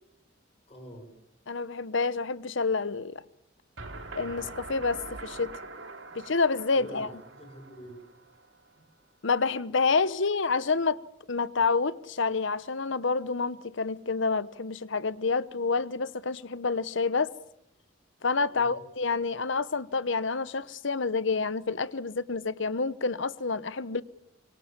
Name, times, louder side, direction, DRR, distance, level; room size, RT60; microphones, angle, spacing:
voice 1, 0.7-1.1 6.0-6.3 6.7-8.0 18.5-18.8, right 1 dB, 30° left, 5.9 m, -46 dB
voice 2, 1.5-3.2 4.2-5.6 6.1-7.1 9.2-11.0 11.3-17.3 18.2-24.0, left 4 dB, 70° left, 1.0 m, -28 dB
sound 1, 3.8-8.7, right 3 dB, 70° right, 3.2 m, -44 dB
25.5 x 23.5 x 7.4 m
head